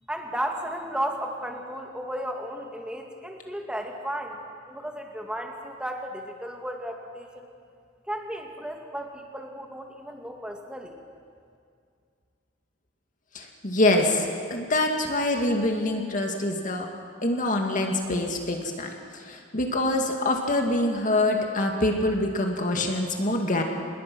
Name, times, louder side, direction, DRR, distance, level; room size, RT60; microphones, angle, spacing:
voice 1, 0.1-4.4 4.7-7.5 8.1-11.0, right 1 dB, 5° right, 2 dB, 2.1 m, -34 dB
voice 2, 13.3-16.9 17.2-23.6, left 1 dB, 45° left, 2 dB, 2.1 m, -25 dB
27.0 x 21.0 x 6.2 m, 2.3 s
head